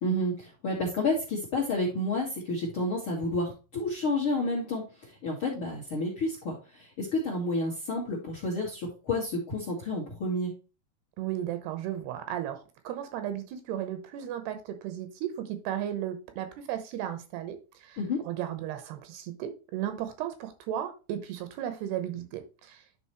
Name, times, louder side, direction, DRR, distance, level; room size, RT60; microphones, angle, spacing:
voice 1, 0.0-10.5 18.0-18.2, left 2 dB, 50° left, 0 dB, 1.7 m, -30 dB
voice 2, 11.2-18.0 18.2-22.8, right 11 dB, 80° right, 9 dB, 2.9 m, -35 dB
11.0 x 4.1 x 3.0 m, 0.31 s
omnidirectional pair, 4.8 m